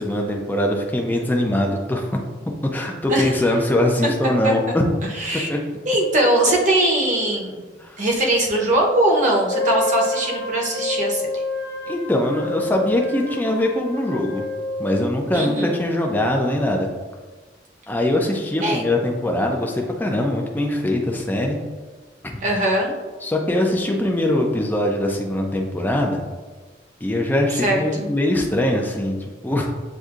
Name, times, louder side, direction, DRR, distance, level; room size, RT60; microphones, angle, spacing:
voice 1, 0.0-2.1 2.7-4.8 5.5-5.6 7.8-8.0 11.9-14.5 14.8-16.9 17.9-21.6 22.2-22.4 23.2-26.2 27.0-29.2 29.4-29.7, left 1 dB, 10° left, 1 dB, 0.5 m, -22 dB
voice 2, 5.2-5.5 5.9-7.6 8.0-11.4 15.3-15.7 18.6-18.8 22.4-22.9 27.6-28.1, right 1 dB, 40° right, -1 dB, 0.8 m, -20 dB
Wind instrument woodwind instrument, 9.5-15.1, left 2 dB, 55° left, 0.8 m, -28 dB
7.9 x 2.7 x 2.4 m, 1.3 s
head